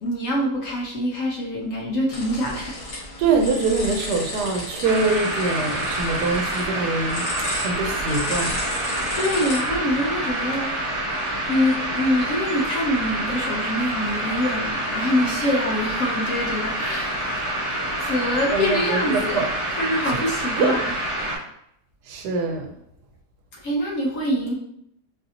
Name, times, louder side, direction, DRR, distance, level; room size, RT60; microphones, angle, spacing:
voice 1, 0.0-2.7 9.1-10.7 11.5-17.2 18.0-20.9 23.5-24.5, left 1 dB, 60° left, -2 dB, 1.0 m, -25 dB
sound 1, 2.1-9.6, left 1 dB, 90° left, 1.9 m, -33 dB
voice 2, 3.2-7.3 7.6-8.6 18.5-19.5 20.1-20.2 20.6-20.8 22.1-22.7, right 4 dB, 80° right, 4 dB, 1.1 m, -24 dB
sound 2, 4.8-21.4, right 1 dB, 35° right, 1.2 m, -27 dB
4.0 x 2.6 x 2.7 m, 0.72 s
omnidirectional pair, 1.8 m